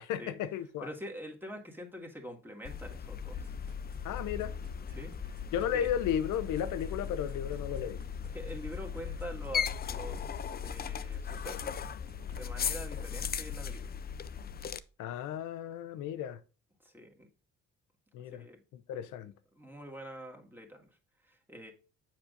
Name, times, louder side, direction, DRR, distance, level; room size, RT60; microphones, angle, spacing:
voice 1, 0.0-0.9 4.0-4.5 5.5-8.0 15.0-16.4 18.1-18.4 18.7-19.3, left 9 dB, 85° left, 0.7 m, -34 dB
voice 2, 0.8-3.5 5.0-5.1 5.7-5.9 8.3-11.9 12.3-13.9 16.8-17.3 18.3-18.6 19.5-20.9 21.3-21.7, equal, 5° right, 1.7 m, -45 dB
sound 1, 2.6-14.8, left 7 dB, 30° left, 0.4 m, -37 dB
sound 2, 3.3-13.8, right 6 dB, 50° right, 0.9 m, -58 dB
7.4 x 6.0 x 2.5 m
cardioid pair, 90°, 30 cm